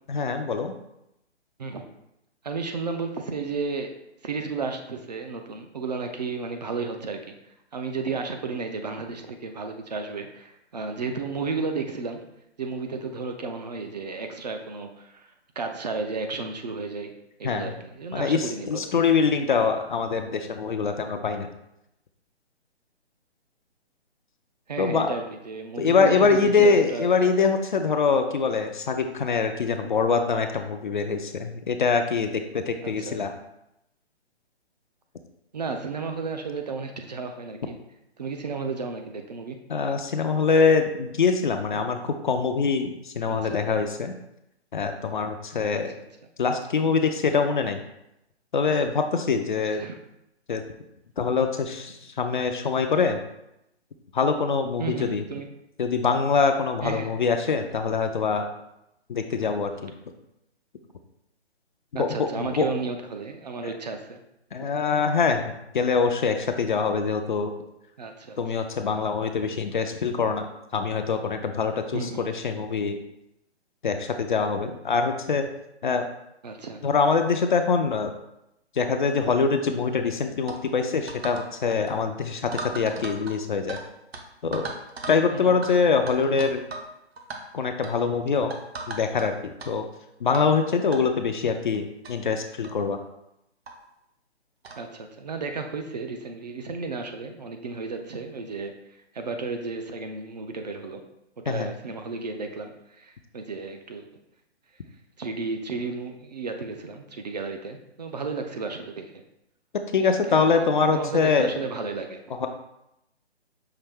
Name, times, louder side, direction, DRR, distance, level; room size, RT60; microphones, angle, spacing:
voice 1, 0.1-0.7 17.4-17.7 18.1-21.5 24.8-25.1 25.8-33.3 39.7-42.0 42.2-44.1 44.7-45.9 46.4-47.8 48.5-49.8 50.5-50.6 51.2-53.2 54.1-55.2 55.8-58.5 59.1-59.9 62.0-62.7 64.5-67.5 68.4-70.5 70.7-73.0 73.8-75.5 75.8-76.0 76.8-78.1 78.8-83.8 84.4-84.7 85.1-86.6 87.5-88.5 88.9-89.3 89.7-89.8 90.2-93.0 101.5-101.7 109.9-111.5 112.4-112.5, left 5 dB, 45° left, 6 dB, 0.4 m, -24 dB
voice 2, 2.4-3.9 4.2-12.2 12.6-17.1 17.4-19.0 24.7-27.5 32.8-33.2 35.5-37.8 38.2-39.6 41.7-41.8 43.3-43.6 45.7-45.8 49.7-50.0 54.8-55.5 56.8-57.1 61.9-64.2 64.6-64.7 68.0-68.4 71.9-72.2 76.4-76.8 78.8-78.9 85.3-85.6 94.8-98.7 99.1-101.0 101.4-104.0 105.2-109.2 110.0-110.1 110.6-112.2, right 4 dB, 40° right, 5 dB, 0.4 m, -33 dB
sound 1, 80.5-80.6 81.1-81.5 81.7-81.9 82.5-83.8 84.1-84.2 84.5-85.2 85.6-85.7 86.1-86.9 87.2-87.4 87.8-88.0 88.5-89.3 89.6-89.7 90.3-90.5 90.9-91.0 91.7-91.8 92.0-92.1 92.6-92.8 93.7-93.8 94.6-94.8, right 3 dB, 65° right, 0.8 m, -36 dB
5.7 x 2.6 x 3.4 m, 0.84 s
figure-of-eight pair, 140°, 34 cm